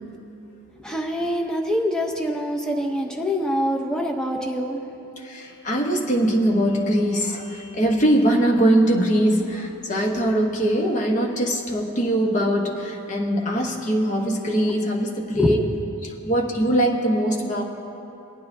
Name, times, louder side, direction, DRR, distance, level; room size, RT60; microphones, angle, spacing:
voice 1, 0.8-4.8 15.3-15.5, equal, 5° left, 1 dB, 0.7 m, -24 dB
voice 2, 5.2-15.6 16.0-17.6, right 1 dB, 35° left, 0 dB, 1.0 m, -22 dB
20.0 x 9.4 x 2.7 m, 3.0 s
head